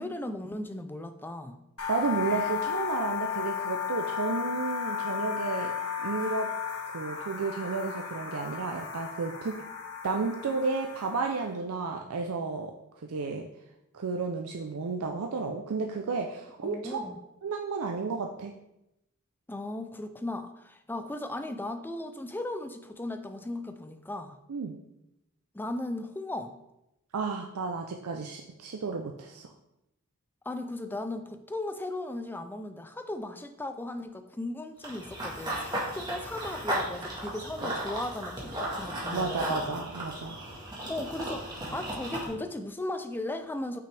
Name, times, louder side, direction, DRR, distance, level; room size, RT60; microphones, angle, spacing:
voice 1, 0.0-1.6 16.6-17.2 19.5-24.4 25.5-26.6 30.5-39.7 40.9-43.8, left 1 dB, 10° left, 8 dB, 0.4 m, -37 dB
sound 1, 1.8-11.5, left 8 dB, 70° left, 1.2 m, -34 dB
voice 2, 1.9-5.7 6.0-6.5 6.9-9.6 10.0-12.7 13.0-13.5 13.9-17.0 17.4-18.5 24.5-24.8 27.1-29.5 37.6-37.7 39.1-40.5, right 4 dB, 75° right, 2 dB, 0.5 m, -32 dB
Run / Bird vocalization bird call bird song, 34.8-42.3, right 1 dB, 20° right, 1.6 m, -35 dB
6.0 x 5.7 x 3.3 m, 0.87 s
head